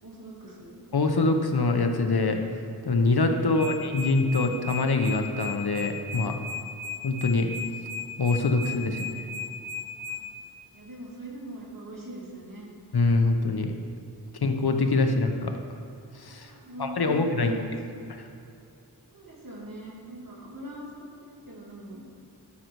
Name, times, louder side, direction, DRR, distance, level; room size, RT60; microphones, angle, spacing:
voice 1, 0.0-0.8 8.9-9.2 10.7-12.7 16.4-18.1 19.1-22.0, right 1 dB, 50° right, -4 dB, 2.4 m, -42 dB
voice 2, 0.9-2.4 2.8-6.3 7.0-7.5 8.2-9.3 12.9-13.7 14.4-15.6 16.1-16.5 16.8-17.5 18.1-18.3, left 3 dB, 60° left, 5 dB, 0.9 m, -24 dB
sound 1, 3.6-10.2, left 3 dB, 5° right, 1.2 m, -35 dB
12.5 x 6.5 x 4.6 m, 2.7 s
wide cardioid pair, 80°, 42 cm